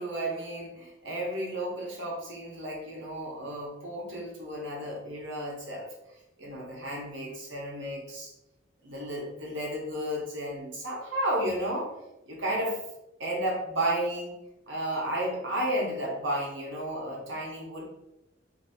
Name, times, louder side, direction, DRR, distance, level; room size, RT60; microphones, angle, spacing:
voice 1, 0.0-5.9 6.4-8.3 8.8-11.9 12.3-12.8 13.2-14.3 14.7-17.8, right 1 dB, 70° right, -3 dB, 1.2 m, -32 dB
2.9 x 2.6 x 4.2 m, 0.89 s
head